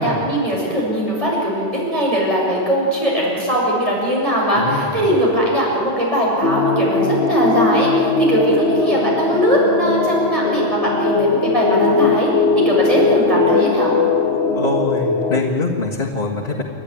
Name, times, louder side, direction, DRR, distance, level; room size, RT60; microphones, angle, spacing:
voice 1, 0.0-12.3 12.6-14.0, equal, 30° right, -4 dB, 7.2 m, -19 dB
voice 2, 4.5-5.1 14.5-16.6, left 2 dB, 55° left, -3 dB, 2.0 m, -23 dB
sound 1, 6.4-15.4, left 3 dB, 80° left, 1.5 m, -19 dB
29.0 x 12.0 x 9.9 m, 2.6 s
omnidirectional pair, 1.1 m